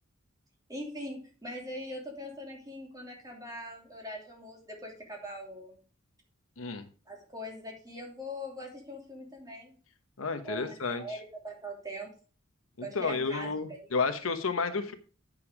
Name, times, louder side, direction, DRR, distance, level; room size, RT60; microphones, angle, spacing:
voice 1, 0.7-5.8 7.1-9.8 10.4-11.2 11.4-12.1 12.8-13.8, equal, 20° right, -1 dB, 3.0 m, -41 dB
voice 2, 10.2-11.0 12.8-14.9, left 4 dB, 80° left, 9 dB, 1.1 m, -31 dB
8.8 x 6.8 x 4.9 m, 0.39 s
head